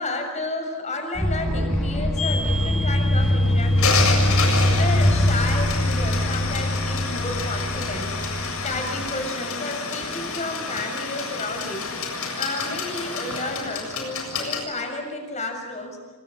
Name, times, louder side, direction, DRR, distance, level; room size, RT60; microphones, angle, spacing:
voice 1, 0.0-4.1 4.7-8.2 8.6-11.9 12.4-16.0, left 2 dB, 35° left, 4 dB, 6.9 m, -31 dB
sound 1, 1.1-9.1, left 1 dB, 5° left, 7.7 m, -22 dB
overn timer-ding, 2.2-14.6, left 4 dB, 80° left, 7.3 m, -29 dB
28.0 x 25.5 x 6.6 m, 1.4 s
head